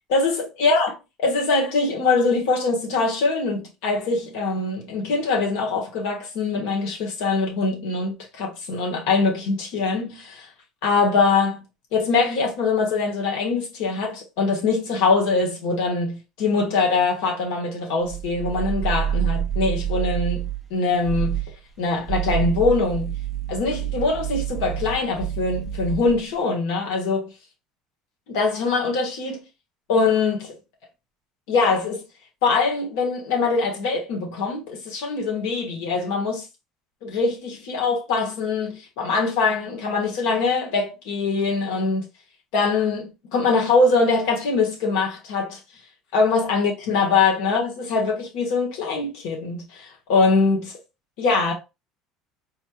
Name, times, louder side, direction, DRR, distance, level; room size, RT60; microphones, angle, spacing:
voice 1, 0.1-0.9 1.2-10.5 10.8-11.6 11.9-21.4 21.8-23.1 23.5-27.3 28.3-29.4 29.9-30.6 31.5-32.0 32.4-36.4 37.0-42.0 42.5-45.6 46.1-50.7 51.2-51.5, left 4 dB, 70° left, 1.5 m, -23 dB
sound 1, 18.0-20.7 21.0-21.6 22.0-26.2, right 10 dB, ahead, 0.8 m, -28 dB
4.3 x 3.2 x 2.4 m
cardioid pair, 170°, 0 cm